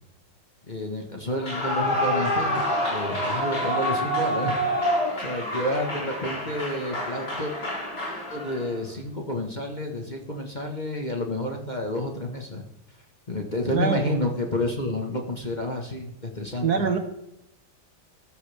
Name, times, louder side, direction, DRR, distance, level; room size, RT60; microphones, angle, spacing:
voice 1, 0.7-2.6 2.9-4.5 5.2-7.5 8.3-12.6 13.3-16.9, left 1 dB, 25° left, 2 dB, 1.5 m, -30 dB
Clapping / Cheering / Applause, 1.3-8.7, equal, 55° left, 7.1 m, -27 dB
voice 2, 13.7-14.2 16.6-17.0, right 6 dB, 55° right, 7 dB, 1.6 m, -24 dB
15.0 x 13.5 x 3.5 m, 0.82 s
omnidirectional pair, 2.2 m